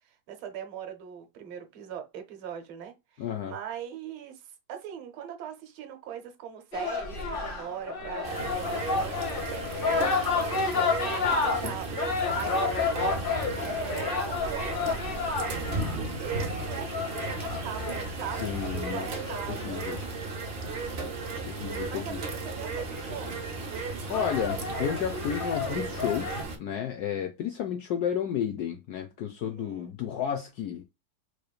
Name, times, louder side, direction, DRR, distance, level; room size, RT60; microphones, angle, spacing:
voice 1, 0.0-13.1 13.7-15.5 16.0-19.8 21.9-23.4 29.4-29.9, right 9 dB, 85° right, 1.7 m, -41 dB
voice 2, 3.2-3.5 11.6-11.7 18.4-19.1 19.5-20.0 21.4-22.2 24.1-30.8, left 9 dB, 75° left, 0.9 m, -32 dB
sound 1, 6.7-20.9 22.5-22.6 23.0-23.4 23.9-26.4, left 4 dB, 50° left, 0.6 m, -31 dB
sound 2, 8.2-26.6, right 3 dB, 50° right, 0.7 m, -35 dB
4.8 x 3.0 x 2.2 m
omnidirectional pair, 2.2 m